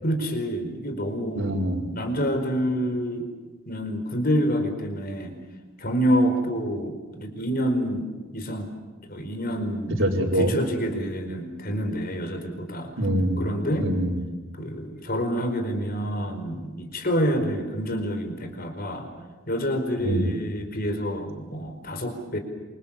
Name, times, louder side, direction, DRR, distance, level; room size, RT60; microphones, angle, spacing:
voice 1, 0.0-1.6 1.9-3.3 3.7-5.4 5.8-8.1 8.3-8.7 9.1-12.9 13.4-13.9 14.6-19.1 19.5-22.4, equal, 45° left, 6 dB, 4.7 m, -27 dB
voice 2, 1.4-1.9 10.0-10.5 13.0-13.5 13.8-14.2 20.0-20.3, equal, 65° right, 1 dB, 4.9 m, -24 dB
27.5 x 26.0 x 7.4 m, 1.3 s
head